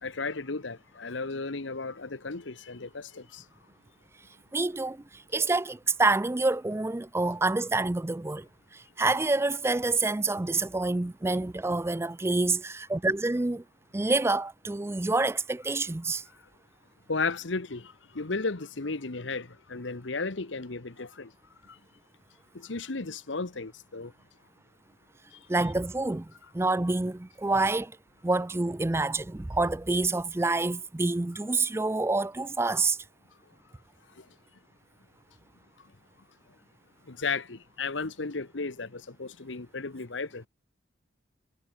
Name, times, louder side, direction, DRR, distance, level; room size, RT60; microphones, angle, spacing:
voice 1, 0.0-3.4 17.1-21.3 22.5-24.1 37.1-40.5, left 4 dB, 75° left, 1.2 m, -34 dB
voice 2, 4.5-13.6 13.9-16.2 25.5-27.9 28.2-33.0, right 3 dB, 15° right, 0.4 m, -27 dB
head